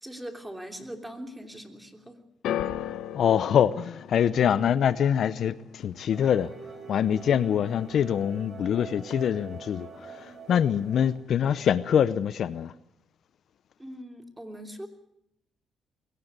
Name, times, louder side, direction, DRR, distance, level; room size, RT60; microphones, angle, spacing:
voice 1, 0.0-2.2 13.8-14.9, equal, 10° right, 3.1 m, -41 dB
sound 1, 2.4-8.7 9.0-9.7 10.4-10.5, left 11 dB, 80° left, 1.1 m, -38 dB
voice 2, 3.1-6.5 6.9-12.7, left 9 dB, 65° left, 0.7 m, -24 dB
sound 2, 6.1-11.1, right 5 dB, 45° right, 5.4 m, -45 dB
22.0 x 17.5 x 8.1 m
cardioid pair, 90°, 0 cm